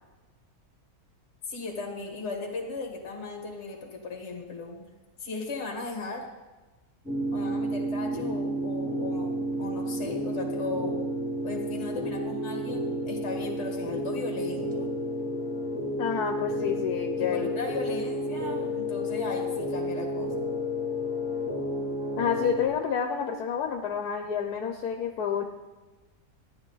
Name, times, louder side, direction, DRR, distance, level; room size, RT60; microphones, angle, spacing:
voice 1, 1.5-4.9 5.2-6.2 7.3-11.0 11.4-14.9 17.2-20.4, left 3 dB, 45° left, 1 dB, 1.9 m, -36 dB
sound 1, 7.1-22.7, equal, 5° right, 2.0 m, -31 dB
voice 2, 16.0-17.6 22.2-25.4, left 7 dB, 75° left, 5 dB, 1.3 m, -29 dB
14.0 x 10.5 x 4.0 m, 1.2 s
omnidirectional pair, 1.6 m